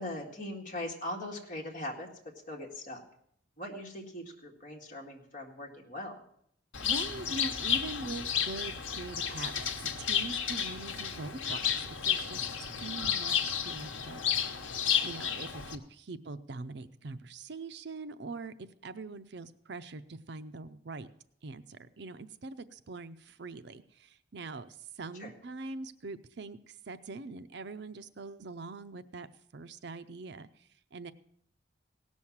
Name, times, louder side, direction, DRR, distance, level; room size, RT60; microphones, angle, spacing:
voice 1, 0.0-2.1 2.5-3.0 3.6-6.2 25.2-25.3, left 1 dB, 45° left, 0 dB, 2.0 m, -40 dB
Bird, 6.7-15.7, left 8 dB, 85° left, 1.1 m, -32 dB
voice 2, 6.8-18.5 18.8-21.1 21.4-29.3 29.5-31.1, right 3 dB, 60° right, 12 dB, 0.6 m, -43 dB
17.5 x 6.3 x 7.2 m, 0.69 s
head